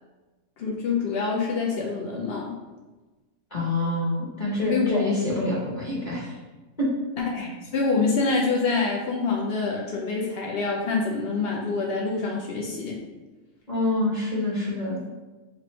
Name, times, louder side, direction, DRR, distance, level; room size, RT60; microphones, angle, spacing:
voice 1, 0.6-2.6 4.7-5.1 7.2-13.0, left 4 dB, 80° left, -1 dB, 0.5 m, -26 dB
voice 2, 3.5-6.4 6.8-6.9 13.7-15.0, left 2 dB, 35° left, -7 dB, 0.8 m, -26 dB
3.1 x 2.6 x 4.2 m, 1.2 s
omnidirectional pair, 1.6 m